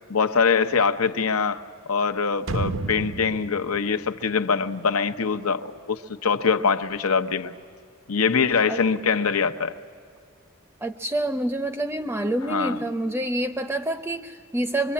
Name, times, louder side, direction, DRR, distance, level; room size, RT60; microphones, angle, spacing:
voice 1, 0.1-1.6 1.9-7.5 8.1-9.7 12.5-12.8, left 5 dB, 90° left, 0.9 m, -23 dB
sound 1, 2.5-5.3 5.6-5.7, right 3 dB, 65° right, 0.7 m, -32 dB
voice 2, 10.8-14.9, right 1 dB, 10° right, 0.6 m, -27 dB
24.5 x 24.0 x 8.5 m
head